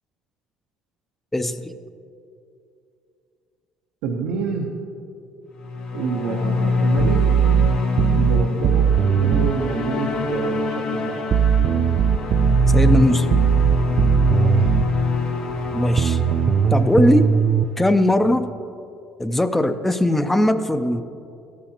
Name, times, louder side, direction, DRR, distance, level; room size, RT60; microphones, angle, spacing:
voice 1, 1.3-1.7 12.7-13.3 15.7-16.2 16.7-17.3 17.8-18.5 19.2-21.0, left 1 dB, 10° left, 10 dB, 0.5 m, -19 dB
voice 2, 4.0-4.7 5.9-7.3 8.1-11.3 13.8-14.1 14.4-14.8, right 5 dB, 90° right, -1 dB, 0.8 m, -28 dB
sound 1, 5.6-18.1, left 4 dB, 65° left, 1.5 m, -25 dB
sound 2, 7.0-9.6 11.3-14.9 16.0-17.6, right 8 dB, 45° right, 0.4 m, -18 dB
13.0 x 12.5 x 2.9 m, 2.6 s
supercardioid pair, 95°, 2 cm